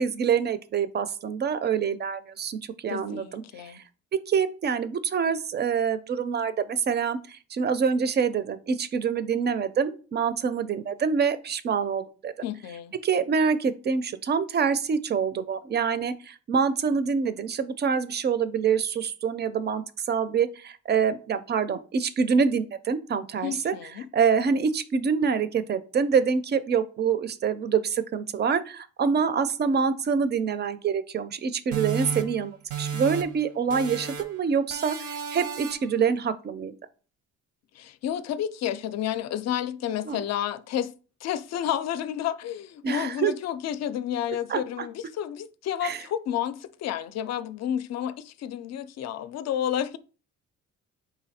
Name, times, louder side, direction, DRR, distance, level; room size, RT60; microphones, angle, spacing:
voice 1, 0.0-3.4 4.3-12.3 13.0-23.7 24.1-36.7 40.1-40.2 42.8-43.3 44.5-44.9 45.8-46.0, right 6 dB, 35° right, 0.4 m, -26 dB
voice 2, 2.9-3.8 12.4-12.9 23.4-24.1 37.8-40.9 41.2-50.0, left 10 dB, 60° left, 0.4 m, -31 dB
sound 1, 31.7-33.4 33.7-34.4 34.7-36.0, right 6 dB, 80° right, 0.8 m, -33 dB
4.0 x 2.7 x 4.1 m
cardioid pair, 90°, 30 cm